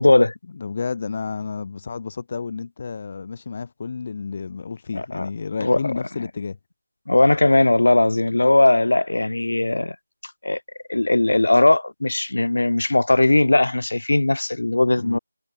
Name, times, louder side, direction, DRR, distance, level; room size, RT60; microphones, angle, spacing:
voice 1, 0.0-0.3 4.9-5.3 5.6-5.8 7.1-9.9 10.4-10.6 10.9-15.2, left 2 dB, 70° left, 3.3 m, -18 dB
voice 2, 0.5-6.6 15.0-15.2, left 5 dB, 25° left, 2.3 m, -31 dB
figure-of-eight pair, 180°, 0 cm